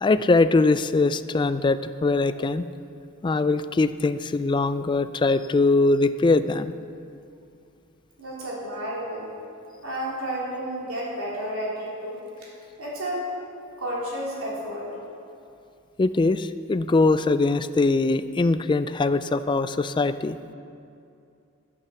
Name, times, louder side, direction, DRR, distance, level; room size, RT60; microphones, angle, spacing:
voice 1, 0.0-2.7 3.2-6.7 16.0-20.4, left 3 dB, 20° left, 12 dB, 0.3 m, -22 dB
voice 2, 8.2-9.3 9.8-12.5 12.8-13.2 13.8-14.9, equal, 80° right, -5 dB, 3.7 m, -31 dB
12.0 x 8.6 x 6.9 m, 2.5 s
head